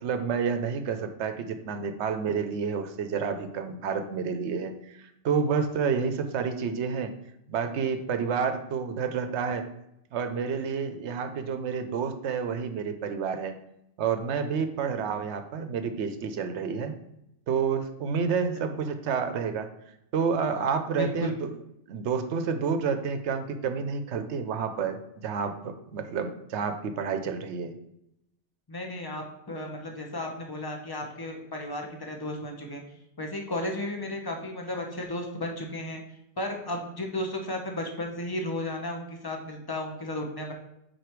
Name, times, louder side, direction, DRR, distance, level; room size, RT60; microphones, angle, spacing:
voice 1, 0.0-7.1 7.5-9.7 10.1-13.6 14.0-16.9 17.5-19.7 20.1-21.5 21.9-27.7, right 6 dB, 70° right, 8 dB, 0.9 m, -29 dB
voice 2, 20.9-21.3 28.7-32.8 33.2-36.0 36.4-40.5, left 1 dB, 20° left, 2 dB, 0.8 m, -34 dB
4.9 x 4.3 x 4.5 m, 0.82 s
omnidirectional pair, 1.2 m